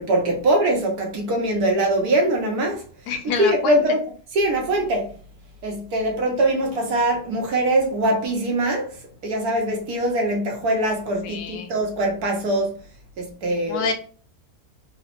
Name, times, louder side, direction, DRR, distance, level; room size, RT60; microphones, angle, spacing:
voice 1, 0.0-2.8 3.4-4.0 4.3-5.1 5.6-8.9 9.2-12.7 13.2-13.8, right 1 dB, 75° right, 1.3 m, -22 dB
voice 2, 3.1-3.8 11.2-11.7 13.7-13.9, left 5 dB, 85° left, 1.2 m, -27 dB
3.8 x 2.0 x 2.9 m
omnidirectional pair, 1.7 m